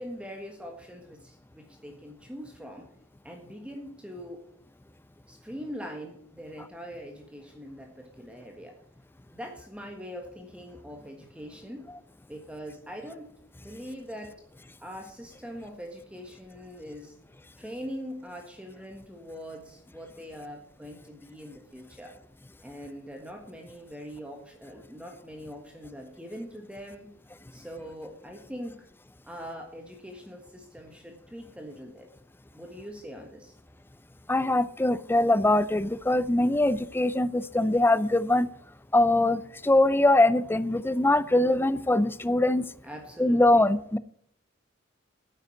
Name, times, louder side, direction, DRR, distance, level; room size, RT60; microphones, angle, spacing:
voice 1, 0.0-2.9 3.2-4.4 5.3-8.8 9.3-11.9 12.3-13.3 13.6-14.4 14.8-17.1 17.6-22.2 22.6-27.1 27.5-28.9 29.2-32.1 32.5-33.5 42.8-43.7, equal, 5° right, 3 dB, 1.4 m, -42 dB
voice 2, 34.3-38.5 38.9-42.6 43.2-44.0, left 1 dB, 10° left, 16 dB, 0.4 m, -22 dB
9.5 x 8.0 x 8.2 m, 0.67 s
head